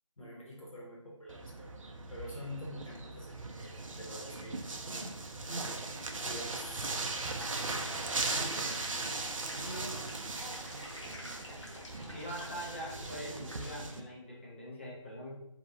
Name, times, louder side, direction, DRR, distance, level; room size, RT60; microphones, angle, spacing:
voice 1, 0.2-1.8 2.1-5.2 5.5-5.8 6.2-7.0, equal, 85° left, -5 dB, 1.0 m, -46 dB
sound 1, 1.3-14.0, right 3 dB, 75° right, 0.4 m, -39 dB
sound 2, 5.8-13.7, left 1 dB, 60° left, 0.8 m, -48 dB
voice 2, 7.4-8.7 9.5-10.0 12.1-15.3, equal, 20° left, -5 dB, 0.5 m, -44 dB
2.7 x 2.2 x 2.5 m, 0.86 s
figure-of-eight pair, 165°, 17 cm